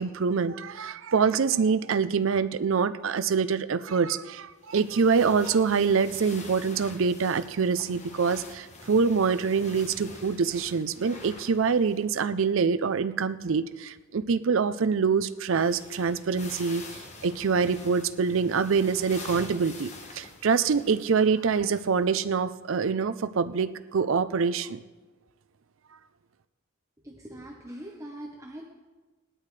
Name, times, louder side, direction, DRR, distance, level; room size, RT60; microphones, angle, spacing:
voice 1, 0.0-16.8 17.2-19.9 20.1-24.8, right 5 dB, 65° right, 13 dB, 0.5 m, -25 dB
sound 1, 4.7-12.2 12.4-12.5 15.0-15.1 15.4-22.0 22.6-22.7 23.9-24.0, left 2 dB, 30° left, 1.3 m, -46 dB
voice 2, 27.0-28.7, right 1 dB, 15° right, -1 dB, 1.0 m, -42 dB
19.0 x 12.0 x 3.3 m, 1.3 s
head